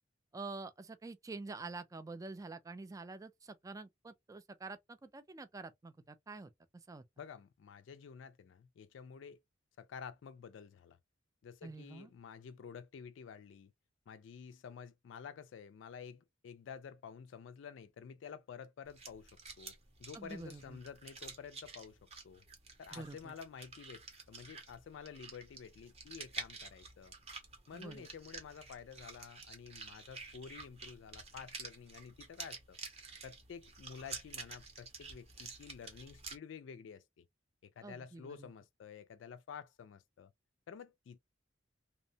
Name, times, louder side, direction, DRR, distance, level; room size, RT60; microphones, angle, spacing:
voice 1, 0.3-6.5 6.9-7.0 11.6-12.1 20.1-20.8 22.9-23.3 27.7-28.0 37.8-38.5, right 3 dB, 20° right, 0.3 m, -47 dB
voice 2, 7.2-9.4 9.8-11.0 11.4-13.7 14.1-19.3 19.6-22.0 22.2-22.4 22.8-27.1 27.7-32.8 33.2-37.2 37.6-40.3 40.7-41.2, left 6 dB, 70° left, 0.3 m, -50 dB
sound 1, 18.8-36.4, right 4 dB, 35° right, 0.7 m, -50 dB
2.8 x 2.1 x 2.6 m
head